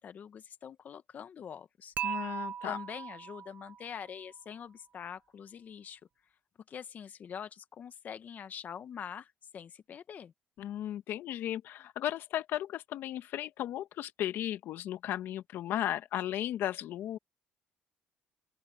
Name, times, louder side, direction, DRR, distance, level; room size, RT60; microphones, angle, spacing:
voice 1, 0.0-1.9 2.6-6.0 6.7-10.3, left 8 dB, 50° left, 1.2 m, -44 dB
voice 2, 2.0-2.8 10.6-17.2, left 12 dB, 70° left, 1.3 m, -35 dB
Dishes pots and pans / Chink clink, 2.0-4.1, right 8 dB, 45° right, 0.5 m, -38 dB
open air
supercardioid pair, 85°, 4 cm